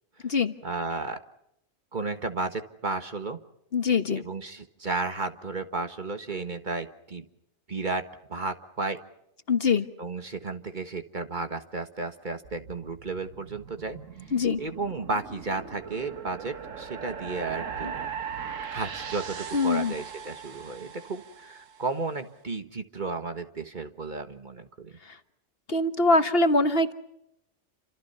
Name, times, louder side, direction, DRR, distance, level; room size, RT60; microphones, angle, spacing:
voice 1, 0.6-1.2 1.9-3.4 4.1-7.3 7.7-9.0 10.0-14.0 14.6-18.0 18.7-25.0, right 3 dB, 40° right, 8 dB, 1.7 m, -33 dB
voice 2, 3.7-4.2 9.5-9.9 14.3-14.6 19.5-19.9 25.7-26.9, left 3 dB, 50° left, 9 dB, 1.5 m, -23 dB
sound 1, 12.4-21.8, right 7 dB, 85° right, 1.7 m, -39 dB
29.0 x 26.5 x 5.7 m, 0.81 s
omnidirectional pair, 1.3 m